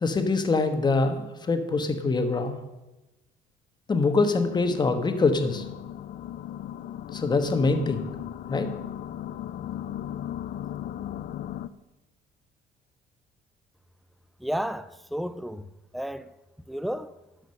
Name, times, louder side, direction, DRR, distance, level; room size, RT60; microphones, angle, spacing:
voice 1, 0.0-2.6 3.9-5.6 7.1-8.0 8.5-8.7, left 3 dB, 25° left, 1.2 m, -24 dB
sound 1, 4.4-11.7, left 11 dB, 60° left, 0.5 m, -37 dB
voice 2, 14.4-15.7 15.9-16.3 16.7-17.1, equal, ahead, 0.4 m, -32 dB
12.0 x 5.2 x 6.5 m
cardioid pair, 110°, 17 cm